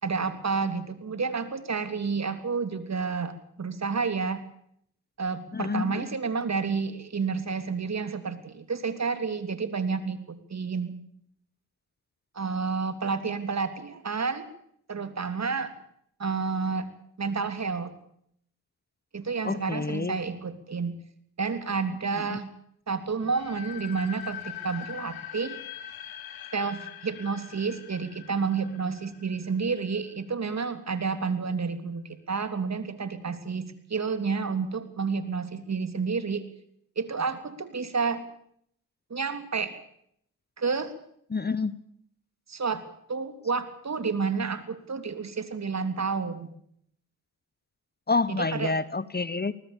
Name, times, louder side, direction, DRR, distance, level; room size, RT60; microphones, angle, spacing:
voice 1, 0.0-4.4 5.2-10.9 12.3-14.5 14.9-15.7 16.2-16.9 17.2-17.9 19.1-21.0 21.4-22.5 22.9-25.6 26.5-36.5 37.0-38.2 39.1-39.7 40.6-40.9 42.5-42.8 43.1-46.5 48.3-48.8, right 5 dB, 50° right, 11 dB, 3.2 m, -30 dB
voice 2, 5.5-6.2 19.4-20.2 22.3-22.4 41.3-41.8 48.1-49.5, left 4 dB, 25° left, 18 dB, 1.1 m, -28 dB
sound 1, 23.2-30.1, left 11 dB, 85° left, 2.6 m, -42 dB
21.5 x 19.5 x 7.1 m, 0.69 s
hypercardioid pair, 40°, 36 cm